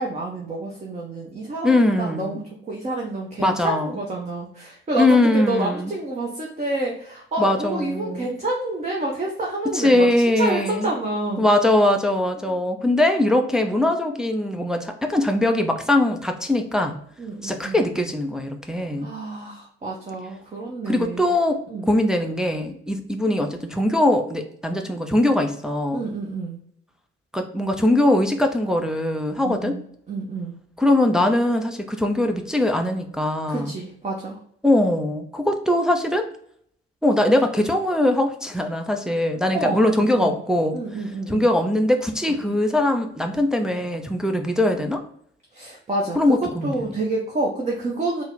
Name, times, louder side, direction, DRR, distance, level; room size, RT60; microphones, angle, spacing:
voice 1, 0.0-10.1 10.4-11.4 12.4-12.6 17.2-17.8 19.0-21.3 21.7-21.9 25.9-26.6 29.4-30.6 33.5-34.4 39.5-40.4 40.7-41.5 45.5-48.2, right 2 dB, 25° right, -2 dB, 0.8 m, -28 dB
voice 2, 1.6-2.4 3.4-3.9 5.0-5.9 7.4-8.3 9.7-10.9 11.4-17.0 17.4-19.1 20.9-26.0 27.3-29.8 30.8-33.7 34.6-36.3 37.0-40.8 41.3-45.0 46.2-46.8, left 1 dB, ahead, 4 dB, 0.4 m, -21 dB
3.8 x 2.1 x 3.8 m, 0.65 s
figure-of-eight pair, 50°, 31 cm